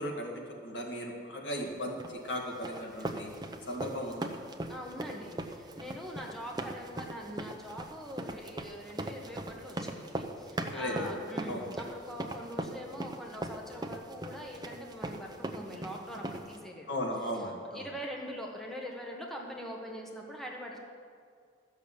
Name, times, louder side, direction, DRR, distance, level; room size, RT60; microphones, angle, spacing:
voice 1, 0.0-2.0 2.2-3.3 3.7-4.3 10.6-11.1 11.5-11.7 16.9-17.9, equal, 75° left, 0 dB, 2.2 m, -36 dB
sound 1, 2.0-16.6, right 1 dB, 25° right, 0.7 m, -39 dB
voice 2, 4.7-17.0 17.3-17.4 17.7-20.8, equal, ahead, -1 dB, 1.3 m, -43 dB
13.0 x 6.9 x 8.1 m, 2.2 s
head